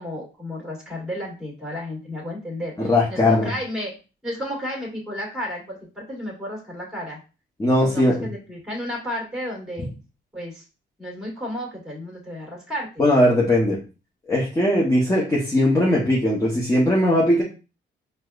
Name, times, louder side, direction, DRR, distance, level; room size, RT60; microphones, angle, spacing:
voice 1, 0.0-3.9 4.2-7.2 7.8-9.9 10.3-10.6 11.0-13.0, equal, 5° right, -2 dB, 1.9 m, -32 dB
voice 2, 2.8-3.5 7.6-8.1 13.0-13.8 14.3-17.4, left 1 dB, 15° left, -4 dB, 0.9 m, -19 dB
4.6 x 2.2 x 2.4 m, 0.33 s
cardioid pair, 90°, 20 cm